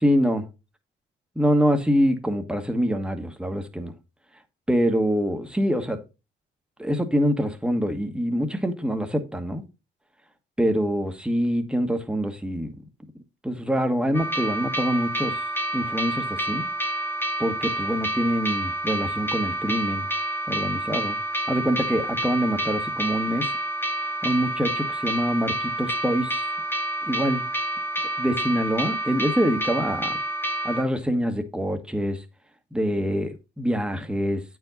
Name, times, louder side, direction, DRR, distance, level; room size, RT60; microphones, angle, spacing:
voice 1, 0.0-0.4 1.3-3.9 4.7-6.0 6.8-9.6 10.6-12.7 13.4-15.4 15.7-16.6 17.4-20.1 20.5-21.2 21.5-23.5 24.2-26.4 27.0-27.5 28.2-30.2 30.6-32.2 32.7-34.4, equal, 5° right, 1.3 m, -25 dB
sound 1, 14.1-30.8, right 1 dB, 10° left, 0.9 m, -28 dB
8.6 x 4.8 x 3.9 m
cardioid pair, 90°, 20 cm